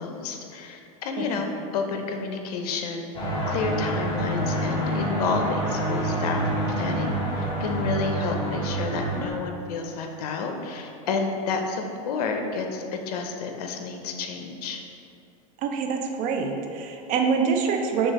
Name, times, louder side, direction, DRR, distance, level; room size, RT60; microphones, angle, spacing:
voice 1, 0.0-14.8, left 4 dB, 85° left, 4 dB, 0.5 m, -30 dB
sound 1, 3.1-9.3, right 1 dB, 25° left, 1.0 m, -27 dB
voice 2, 15.6-18.1, right 5 dB, 45° right, 3 dB, 0.5 m, -25 dB
6.2 x 2.4 x 3.0 m, 2.6 s
supercardioid pair, 135°, 19 cm